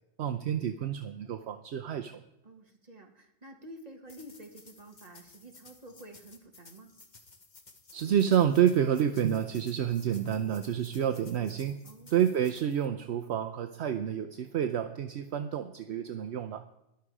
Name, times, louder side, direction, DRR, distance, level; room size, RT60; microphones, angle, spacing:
voice 1, 0.2-2.2 7.9-11.8 12.1-16.6, right 9 dB, 70° right, 8 dB, 0.9 m, -29 dB
voice 2, 2.4-6.9 11.8-12.2, right 1 dB, 35° right, 3 dB, 2.1 m, -50 dB
sound 1, 4.1-12.9, left 3 dB, 40° left, 1.5 m, -56 dB
14.0 x 11.5 x 4.9 m, 0.87 s
omnidirectional pair, 1.2 m